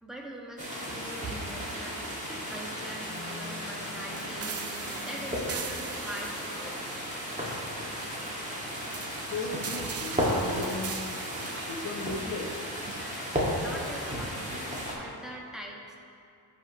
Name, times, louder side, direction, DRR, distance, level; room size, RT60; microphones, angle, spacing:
voice 1, 0.0-4.6 5.0-6.9 13.0-14.4 14.9-16.0, right 1 dB, ahead, -2 dB, 1.5 m, -43 dB
sound 1, 0.6-14.9, equal, 20° right, 2.2 m, -34 dB
sound 2, 2.8-6.9, left 1 dB, 75° left, 1.1 m, -49 dB
sound 3, 4.4-13.3, right 7 dB, 40° right, 0.5 m, -42 dB
voice 2, 9.2-11.0 11.6-12.6, left 3 dB, 50° left, 0 dB, 1.1 m, -36 dB
14.5 x 5.6 x 3.1 m, 2.5 s
cardioid pair, 90°, 39 cm